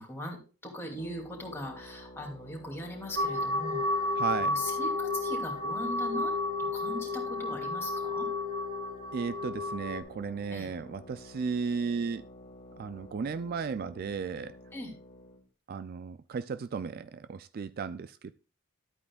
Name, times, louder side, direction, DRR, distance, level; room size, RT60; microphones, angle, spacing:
voice 1, 0.0-6.3 6.7-8.3 10.5-10.7 14.7-14.9, left 1 dB, 10° left, 2.6 m, -40 dB
sound 1, 0.9-15.4, left 1 dB, 40° left, 1.9 m, -51 dB
sound 2, 3.2-10.0, left 2 dB, 80° right, 1.6 m, -31 dB
voice 2, 4.2-4.6 9.1-12.2 12.8-14.6 15.7-18.3, right 5 dB, 45° right, 0.3 m, -35 dB
12.5 x 8.6 x 2.4 m
head